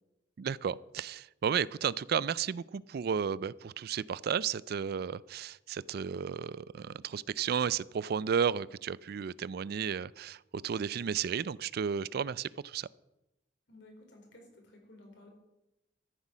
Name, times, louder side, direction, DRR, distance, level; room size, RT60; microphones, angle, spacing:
voice 1, 0.4-12.9, right 7 dB, 60° right, 21 dB, 0.4 m, -33 dB
voice 2, 13.7-15.3, left 1 dB, 70° left, 1 dB, 4.3 m, -55 dB
13.5 x 9.7 x 6.2 m, 0.93 s
head